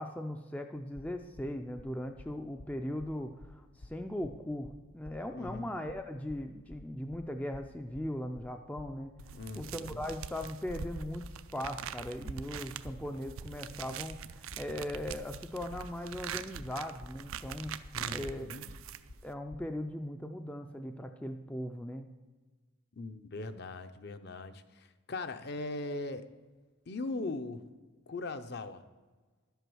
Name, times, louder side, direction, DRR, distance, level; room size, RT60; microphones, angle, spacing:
voice 1, 0.0-9.1 9.6-11.2 11.5-17.7 18.1-18.5 19.2-22.1, left 1 dB, 5° left, 5 dB, 0.4 m, -39 dB
sound 1, 0.9-19.6, left 1 dB, 75° left, 0.9 m, -52 dB
voice 2, 5.3-5.6 9.3-10.0 17.9-18.6 22.9-26.3 26.9-27.6 28.1-28.8, left 2 dB, 50° left, 9 dB, 0.6 m, -40 dB
sound 2, 9.2-19.3, right 7 dB, 75° right, 0.5 m, -43 dB
11.5 x 8.1 x 6.2 m, 1.3 s
head